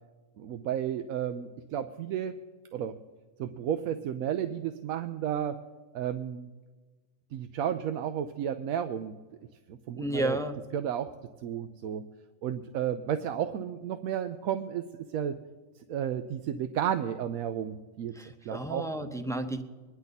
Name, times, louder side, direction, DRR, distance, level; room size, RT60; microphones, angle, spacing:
voice 1, 0.4-2.4 2.7-3.0 3.4-5.6 5.9-6.5 7.3-9.1 9.7-10.4 10.7-11.1 11.4-12.0 12.4-14.9 15.1-15.3 15.9-18.1 18.4-18.9, right 9 dB, 90° right, 8 dB, 1.0 m, -32 dB
voice 2, 10.0-10.6 18.1-19.6, right 1 dB, 5° left, 6 dB, 0.5 m, -32 dB
23.5 x 10.5 x 4.1 m, 1.3 s
omnidirectional pair, 1.4 m